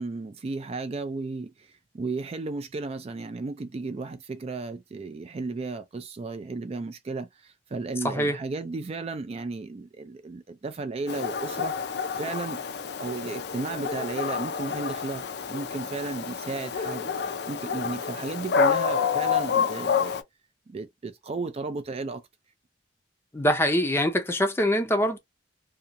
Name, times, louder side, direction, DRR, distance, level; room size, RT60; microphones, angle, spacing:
voice 1, 0.0-11.7 12.1-12.6 13.0-17.1 17.5-20.2 20.7-22.2, right 3 dB, 35° right, 0.3 m, -34 dB
voice 2, 8.0-8.4 23.3-25.2, equal, 15° left, 0.6 m, -24 dB
Dog, 11.1-20.2, left 6 dB, 65° left, 0.4 m, -28 dB
2.8 x 2.3 x 2.6 m
head